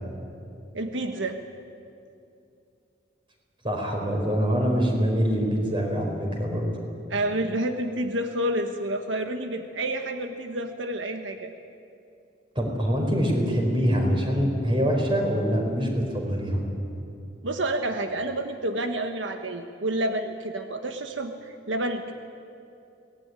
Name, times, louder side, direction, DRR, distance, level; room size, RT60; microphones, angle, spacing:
voice 1, 0.7-1.4 7.1-11.5 17.4-22.1, right 1 dB, 90° right, 6 dB, 1.4 m, -29 dB
voice 2, 3.6-6.7 12.5-16.6, equal, 25° right, 1 dB, 4.9 m, -24 dB
23.0 x 19.0 x 9.9 m, 2.7 s
head